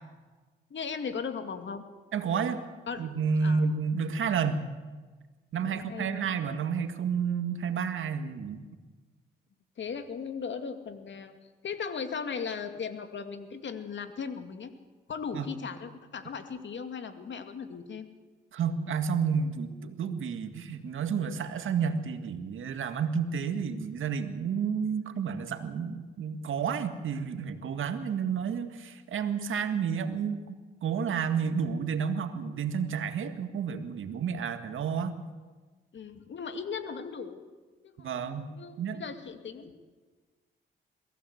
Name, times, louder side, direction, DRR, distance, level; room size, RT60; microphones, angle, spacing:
voice 1, 0.7-1.8 2.9-3.0 3.4-3.6 5.6-6.3 9.8-11.3 11.6-14.7 15.1-18.1 35.9-37.5 37.8-39.8, left 6 dB, 65° left, 8 dB, 2.4 m, -37 dB
voice 2, 2.1-2.6 3.0-4.7 5.5-8.7 15.3-15.5 18.5-30.6 30.8-35.1 38.0-38.5 38.8-39.0, right 6 dB, 75° right, 8 dB, 1.9 m, -30 dB
23.0 x 16.0 x 8.1 m, 1.3 s
supercardioid pair, 55°, 21 cm